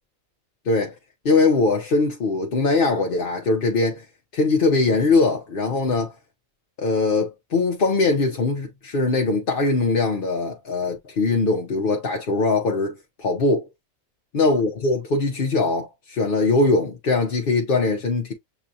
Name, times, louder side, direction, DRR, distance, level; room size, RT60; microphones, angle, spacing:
voice 1, 1.2-4.1 4.3-6.1 6.8-13.7 14.3-18.3, left 3 dB, 45° left, 0.9 m, -21 dB
6.9 x 2.4 x 2.7 m
omnidirectional pair, 1.4 m